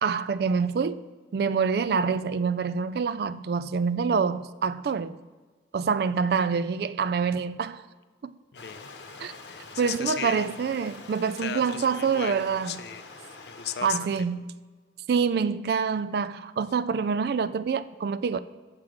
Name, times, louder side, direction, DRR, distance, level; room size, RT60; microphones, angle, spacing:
voice 1, 0.0-1.0 1.3-5.2 5.7-7.8 8.2-8.3 9.2-9.3 9.8-12.8 13.8-14.4 15.1-18.4, right 5 dB, 60° right, 0.3 m, -26 dB
Stream, 8.5-13.9, left 3 dB, 80° left, 0.9 m, -45 dB
voice 2, 8.5-10.6 11.2-13.1 13.5-14.1, left 8 dB, 65° left, 0.5 m, -37 dB
7.4 x 7.3 x 4.9 m
head